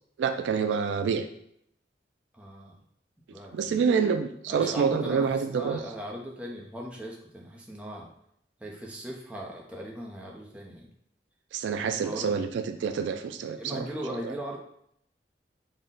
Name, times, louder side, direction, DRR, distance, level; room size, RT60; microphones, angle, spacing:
voice 1, 0.2-1.2 3.5-5.8 11.5-13.9 14.2-14.3, right 6 dB, 85° right, 8 dB, 0.3 m, -27 dB
voice 2, 2.3-2.8 3.3-3.8 4.5-8.1 8.6-10.9 12.0-12.4 13.5-14.6, right 1 dB, 5° right, -2 dB, 0.5 m, -39 dB
3.9 x 2.1 x 3.7 m, 0.72 s
head